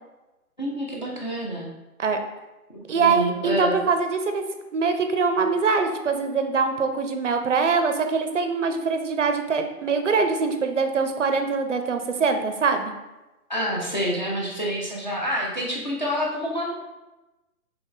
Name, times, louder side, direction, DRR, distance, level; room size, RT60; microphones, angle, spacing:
voice 1, 0.6-1.7 2.7-3.8 13.5-16.7, equal, 30° left, -4 dB, 0.5 m, -28 dB
voice 2, 2.9-4.4 4.7-12.9, right 4 dB, 55° right, 6 dB, 0.5 m, -23 dB
3.9 x 3.4 x 3.7 m, 1.1 s
hypercardioid pair, 170°, 45 cm